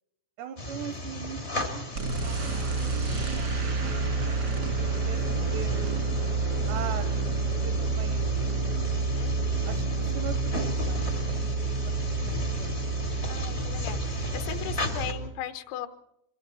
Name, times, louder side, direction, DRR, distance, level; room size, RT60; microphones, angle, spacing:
voice 1, 0.4-4.4 4.7-6.0 6.7-9.2 9.6-12.0 12.2-12.8, right 8 dB, 80° right, 9 dB, 2.6 m, -42 dB
fan light, 0.6-15.1, left 1 dB, 65° left, 0.6 m, -36 dB
sound 1, 1.9-15.3, right 3 dB, 55° right, 1.1 m, -29 dB
voice 2, 9.2-9.7 13.2-15.9, left 10 dB, 80° left, 9 dB, 3.8 m, -38 dB
26.5 x 23.0 x 4.3 m, 0.78 s
omnidirectional pair, 5.9 m